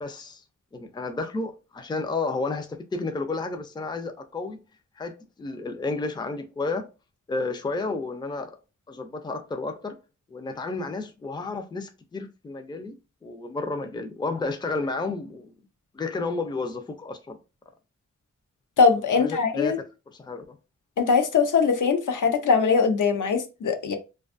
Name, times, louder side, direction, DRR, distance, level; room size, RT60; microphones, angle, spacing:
voice 1, 0.0-0.4 0.7-4.6 5.0-6.9 7.3-8.5 8.9-10.0 10.3-12.9 13.2-15.5 15.9-17.4 19.1-19.8 20.1-20.6, left 3 dB, 15° left, 0.3 m, -31 dB
voice 2, 18.8-19.8 21.0-24.0, left 5 dB, 85° left, 0.6 m, -21 dB
2.5 x 2.3 x 2.4 m
wide cardioid pair, 100°, 30 cm